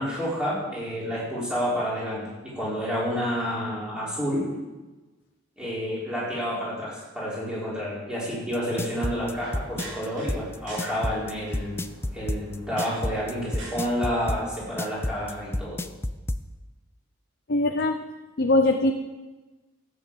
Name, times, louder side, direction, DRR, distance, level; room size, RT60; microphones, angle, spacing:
voice 1, 0.0-4.5 5.6-11.8 12.1-15.8, equal, 5° right, -7 dB, 4.7 m, -29 dB
sound 1, 8.5-16.4, left 1 dB, 10° left, 0.5 m, -29 dB
sound 2, 8.7-13.8, right 2 dB, 60° right, 4.2 m, -45 dB
voice 2, 17.5-18.1 18.4-18.9, left 2 dB, 50° left, 3 dB, 0.8 m, -21 dB
14.0 x 9.0 x 7.5 m, 1.2 s
head